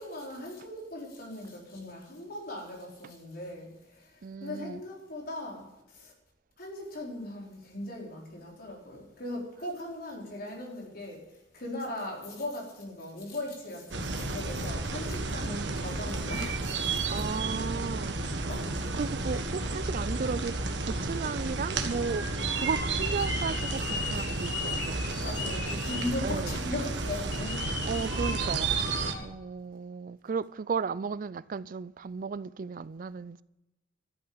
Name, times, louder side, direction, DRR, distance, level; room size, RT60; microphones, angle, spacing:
voice 1, 0.0-4.1 4.4-6.1 6.6-11.2 11.5-17.1 18.5-18.9 25.2-27.7, left 1 dB, 55° left, 4.7 m, -39 dB
voice 2, 4.2-4.8 15.5-15.8 17.1-18.5 18.9-22.3 22.5-25.0 26.2-26.6 27.9-28.8 29.2-33.4, right 5 dB, 50° right, 0.4 m, -35 dB
sound 1, 13.9-29.1, right 3 dB, 70° right, 1.6 m, -32 dB
sound 2, 22.4-26.1 27.3-29.2, left 4 dB, 80° left, 4.3 m, -38 dB
13.5 x 8.8 x 8.7 m
head